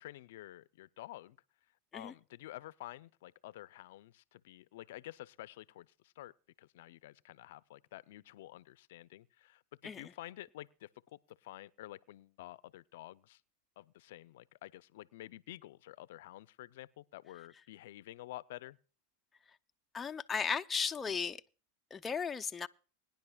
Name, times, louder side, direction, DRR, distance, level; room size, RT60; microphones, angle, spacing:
voice 1, 0.0-1.4 1.9-5.9 6.2-6.3 6.6-13.4 13.8-18.8, left 15 dB, 75° left, 0.5 m, -50 dB
voice 2, 19.9-21.4 21.9-22.7, left 6 dB, 15° left, 0.4 m, -35 dB
23.5 x 10.5 x 2.3 m
supercardioid pair, 135°, 0 cm